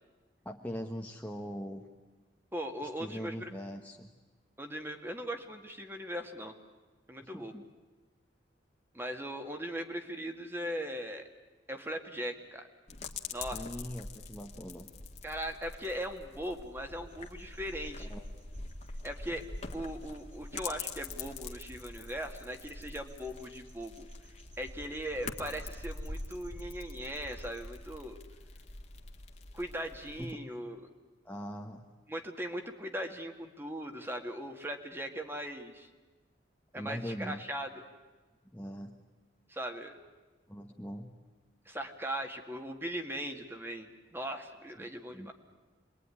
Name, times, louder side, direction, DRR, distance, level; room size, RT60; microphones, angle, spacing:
voice 1, 0.4-1.8 2.8-4.1 7.2-7.6 13.5-14.9 18.0-18.3 30.2-30.4 31.2-31.8 36.7-37.4 38.5-38.9 40.5-41.1 44.8-45.3, equal, 10° left, 1 dB, 1.2 m, -41 dB
voice 2, 2.5-3.5 4.6-6.5 7.1-7.5 8.9-11.2 11.7-12.6 13.3-13.7 15.2-18.1 19.0-19.5 19.7-24.1 24.6-28.2 29.5-30.9 32.1-35.9 36.7-37.7 39.5-40.0 41.7-45.3, equal, 15° right, 5 dB, 2.0 m, -39 dB
sound 1, 12.9-30.3, left 3 dB, 40° left, 1.9 m, -44 dB
sound 2, 16.6-27.7, right 1 dB, 80° right, 4.2 m, -56 dB
27.0 x 21.5 x 9.9 m, 1.3 s
head